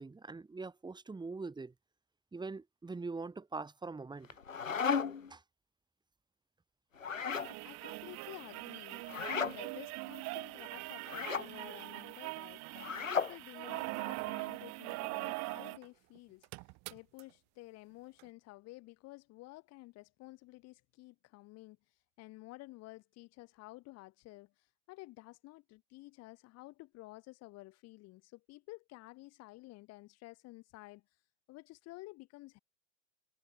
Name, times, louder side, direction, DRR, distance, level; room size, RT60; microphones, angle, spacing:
voice 1, 0.0-1.7 2.3-4.3 5.3-5.4, right 3 dB, 10° right, 5.5 m, -43 dB
sound 1, 4.2-5.3 7.0-7.5 9.1-9.6 11.0-11.5 12.8-13.4, left 6 dB, 85° left, 1.5 m, -34 dB
sound 2, 7.3-15.9 16.2-16.3 16.4-17.2 18.2-18.3, right 26 dB, 45° right, 3.1 m, -42 dB
voice 2, 7.6-12.6 13.1-31.2 31.5-32.6, left 20 dB, 40° left, 4.3 m, -52 dB
figure-of-eight pair, 90°, 38 cm